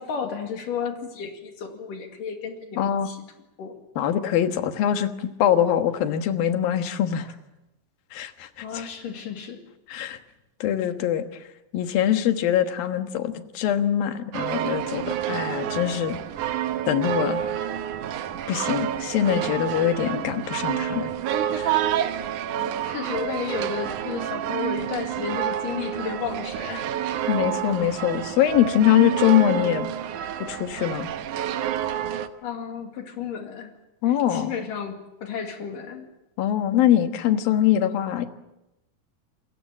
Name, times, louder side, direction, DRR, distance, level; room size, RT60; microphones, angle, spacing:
voice 1, 0.0-3.2 3.6-3.8 7.2-7.3 8.6-9.6 22.5-26.9 32.4-33.7 34.0-36.1, left 7 dB, 70° left, 4 dB, 3.8 m, -33 dB
voice 2, 2.8-3.1 4.0-7.3 8.1-8.5 8.7-8.9 9.9-10.2 10.6-11.3 11.7-16.2 16.9-17.4 18.5-21.1 21.5-21.8 27.3-29.9 30.5-31.1 34.0-34.5 36.4-38.3, left 10 dB, 90° left, 8 dB, 3.2 m, -23 dB
sound 1, 14.3-32.3, right 10 dB, 70° right, 2.4 m, -28 dB
28.0 x 21.5 x 7.4 m, 0.93 s
omnidirectional pair, 4.0 m